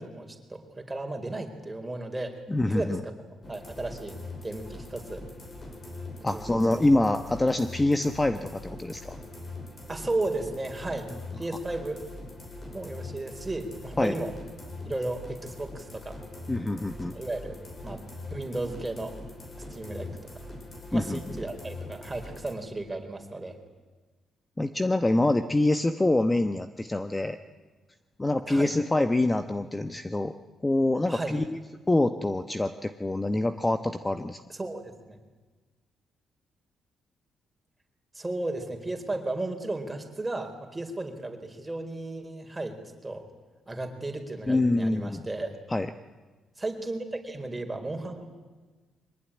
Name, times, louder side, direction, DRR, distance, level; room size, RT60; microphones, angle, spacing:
voice 1, 0.0-2.4 2.6-3.1 3.5-4.2 4.4-5.2 6.3-7.0 9.9-12.0 12.7-14.4 14.8-16.2 17.1-18.0 18.3-19.2 19.7-20.3 20.9-23.6 28.5-28.7 31.1-31.4 34.5-35.2 38.1-42.8 43.0-43.2 43.7-45.6 46.6-48.3, right 2 dB, 15° right, 4 dB, 4.2 m, -34 dB
voice 2, 2.5-3.0 6.2-9.2 14.0-14.1 16.5-17.1 20.9-21.2 24.6-27.4 28.2-30.3 30.6-31.6 31.9-34.4 44.5-45.2 45.7-45.9, left 2 dB, 15° left, 9 dB, 1.1 m, -25 dB
sound 1, 3.4-22.5, left 2 dB, 40° left, 6.3 m, -42 dB
23.5 x 19.5 x 9.9 m, 1.3 s
cardioid pair, 90°, 0 cm